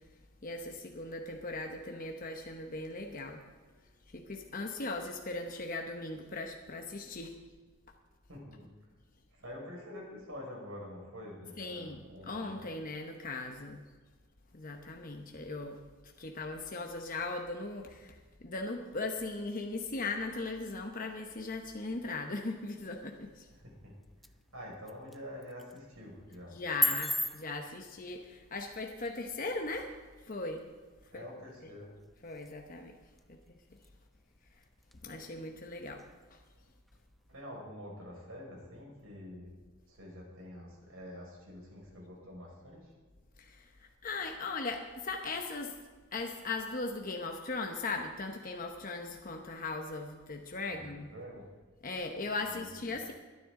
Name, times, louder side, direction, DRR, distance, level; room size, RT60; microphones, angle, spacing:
voice 1, 0.4-3.4 4.1-7.3 11.6-13.8 14.5-15.8 16.2-23.5 26.5-29.9 30.2-30.6 31.1-31.2 32.2-33.0 33.3-33.6 35.0-36.0 36.3-36.4 43.4-45.7 46.1-51.1 51.8-53.1, left 3 dB, 40° left, 3 dB, 1.0 m, -38 dB
voice 2, 8.3-8.7 9.3-12.6 23.6-23.9 24.5-26.6 31.1-31.9 37.3-39.6 39.9-42.9 50.5-51.5 52.4-53.0, left 1 dB, 80° right, -2 dB, 5.3 m, -47 dB
sound 1, 23.3-37.4, left 1 dB, ahead, 0.4 m, -42 dB
22.0 x 10.0 x 3.8 m, 1.4 s
head